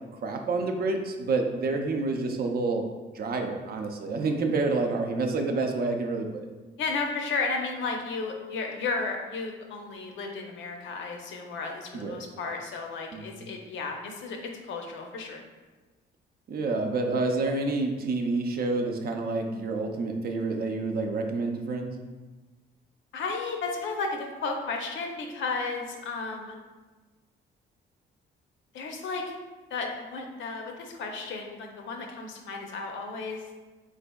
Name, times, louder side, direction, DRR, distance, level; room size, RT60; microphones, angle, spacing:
voice 1, 0.2-2.8 3.1-6.5 11.9-12.2 13.1-13.4 16.5-22.0, right 3 dB, 50° right, 4 dB, 0.5 m, -28 dB
voice 2, 6.8-15.4 23.1-26.6 28.7-29.3 29.7-33.5, left 4 dB, 75° left, 2 dB, 0.6 m, -33 dB
3.5 x 3.2 x 2.2 m, 1.2 s
cardioid pair, 90°, 20 cm